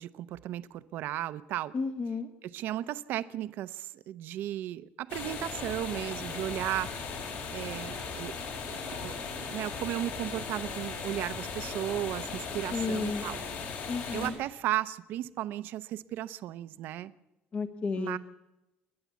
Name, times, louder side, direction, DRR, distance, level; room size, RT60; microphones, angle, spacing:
voice 1, 0.0-1.7 2.4-6.9 7.5-13.4 14.1-17.1 18.0-18.2, right 13 dB, 65° right, 14 dB, 0.8 m, -35 dB
voice 2, 1.7-2.3 12.7-13.2 13.9-14.4 17.5-18.2, left 4 dB, 30° left, 7 dB, 1.1 m, -32 dB
sound 1, 5.1-14.3, left 5 dB, 65° left, 5.5 m, -38 dB
29.5 x 10.5 x 8.4 m, 0.95 s
cardioid pair, 165°, 4 cm